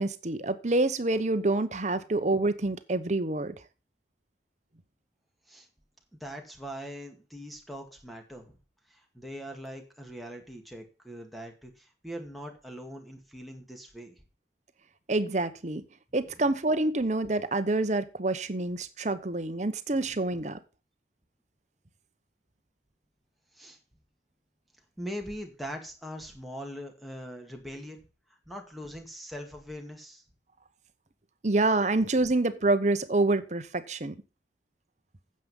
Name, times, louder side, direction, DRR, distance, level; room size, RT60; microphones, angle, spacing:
voice 1, 0.0-3.5 15.1-15.8 16.1-20.6 31.4-34.2, right 2 dB, 40° right, 0.9 m, -27 dB
voice 2, 6.1-8.6 8.9-14.2 23.5-23.8 25.0-28.0 28.5-30.2, equal, ahead, 2.0 m, -41 dB
9.5 x 7.7 x 5.4 m
head